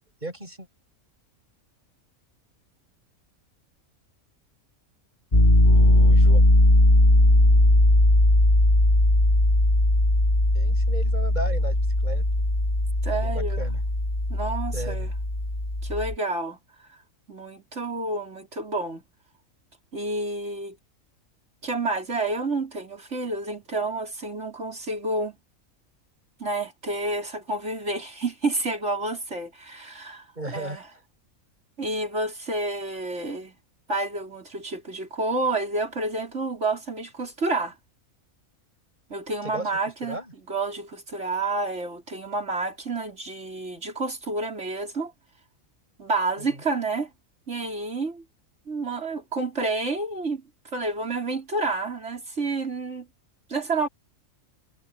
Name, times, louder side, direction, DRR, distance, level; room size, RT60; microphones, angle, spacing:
voice 1, 0.2-0.7 5.6-6.4 10.5-12.2 13.1-13.8 14.7-15.1 30.3-30.8 39.4-39.7 40.0-40.3 46.4-46.6, right 1 dB, 30° right, 8.3 m, -36 dB
Piano, 5.3-16.1, left 1 dB, 35° left, 3.2 m, -19 dB
voice 2, 13.0-13.7 14.3-15.1 15.8-16.6 16.9-17.0 17.3-19.0 19.9-20.8 21.6-25.4 26.4-30.8 31.8-33.6 33.9-37.7 39.1-40.2 40.5-45.1 46.0-47.1 47.5-48.2 48.7-50.4 50.7-53.1 53.5-53.9, right 2 dB, 55° right, 5.1 m, -29 dB
omnidirectional pair, 1.4 m